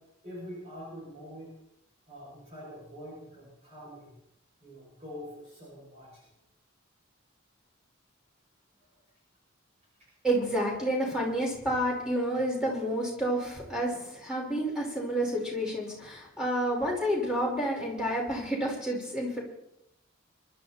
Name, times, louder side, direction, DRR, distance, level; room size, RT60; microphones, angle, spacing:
voice 1, 0.2-1.5 2.1-4.1 4.6-6.3 8.9-9.0 13.9-14.0, equal, 30° right, -6 dB, 7.5 m, -45 dB
voice 2, 10.2-19.4, right 1 dB, 5° right, -3 dB, 5.3 m, -29 dB
25.0 x 12.5 x 4.4 m, 0.80 s
head